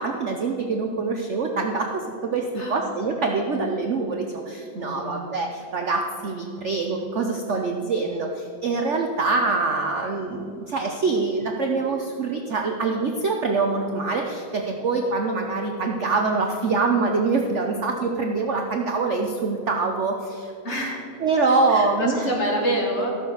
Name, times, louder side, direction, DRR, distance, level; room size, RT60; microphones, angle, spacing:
voice 1, 0.0-20.5 21.2-22.3, right 3 dB, 65° right, 3 dB, 0.7 m, -25 dB
voice 2, 4.7-5.3 20.6-21.0 21.7-23.1, equal, 35° left, -1 dB, 1.9 m, -27 dB
13.5 x 7.0 x 6.4 m, 2.6 s
omnidirectional pair, 2.3 m